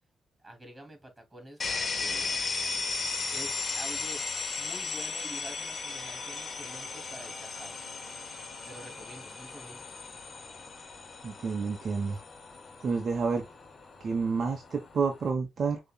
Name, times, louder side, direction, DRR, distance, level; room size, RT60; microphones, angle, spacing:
voice 1, 0.4-2.4 3.3-4.3 4.6-7.8 8.7-9.8, right 1 dB, 20° right, 2.5 m, -47 dB
sound 1, 1.6-15.3, left 4 dB, 45° left, 1.3 m, -36 dB
voice 2, 11.2-12.2 12.8-13.4 14.0-15.8, right 5 dB, 50° right, 0.9 m, -29 dB
6.7 x 3.0 x 2.2 m
cardioid pair, 85°, 0 cm